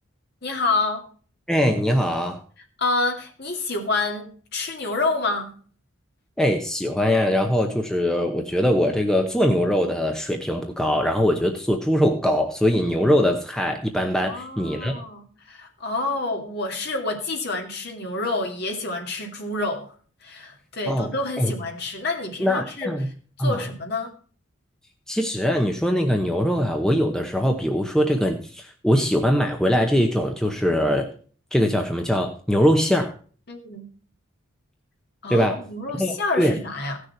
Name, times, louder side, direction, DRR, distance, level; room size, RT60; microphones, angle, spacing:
voice 1, 0.4-1.1 2.8-5.5 14.2-19.9 20.2-23.1 23.4-24.1 33.5-33.9 35.2-37.0, left 3 dB, 50° left, 2.2 m, -28 dB
voice 2, 1.5-2.4 6.4-14.9 20.9-21.1 21.4-21.5 22.4-23.1 23.4-23.6 25.1-31.1 31.5-33.1 35.3-35.6 35.9-36.6, equal, 5° left, 0.8 m, -22 dB
16.0 x 6.6 x 4.3 m
head